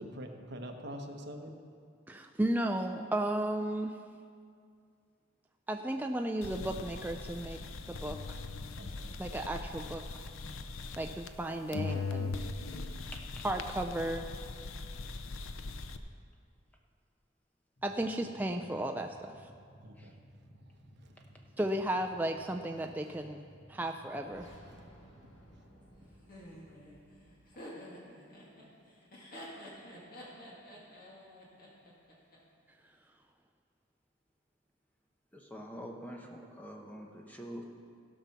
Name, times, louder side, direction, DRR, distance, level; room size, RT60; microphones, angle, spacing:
voice 1, 0.0-1.5 8.7-9.1 19.8-20.1 24.7-24.8, equal, 55° right, 3 dB, 1.1 m, -44 dB
voice 2, 2.1-3.9 5.7-7.6 7.9-8.4 9.2-10.0 11.0-12.4 13.4-14.3 17.8-19.5 21.6-24.5, right 1 dB, 10° right, 4 dB, 0.3 m, -34 dB
sound 1, 6.4-11.5 11.7-16.0, left 3 dB, 85° left, 0.6 m, -40 dB
sound 2, 17.8-27.5, equal, 60° left, 2.0 m, -57 dB
Laughter, 26.3-32.4, equal, 45° left, 2.1 m, -49 dB
voice 3, 35.3-37.6, equal, 10° left, 0 dB, 1.0 m, -46 dB
16.5 x 5.9 x 5.9 m, 2.2 s
head